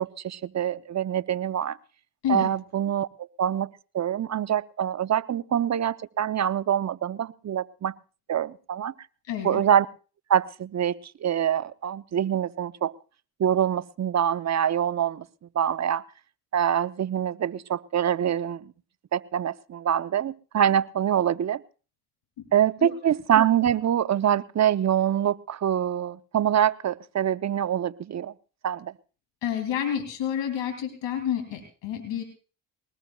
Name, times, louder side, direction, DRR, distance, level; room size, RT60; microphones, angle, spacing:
voice 1, 0.0-1.8 2.3-3.7 3.9-7.9 8.3-8.9 9.4-9.9 10.3-12.9 13.4-15.3 15.5-16.0 16.5-18.7 19.1-21.6 22.5-28.3 28.6-28.9, right 9 dB, 40° right, 14 dB, 0.7 m, -25 dB
voice 2, 9.3-9.6 22.8-22.9 29.4-32.2, left 9 dB, 80° left, 5 dB, 2.9 m, -29 dB
21.0 x 19.5 x 2.3 m, 0.36 s
supercardioid pair, 60°, 43 cm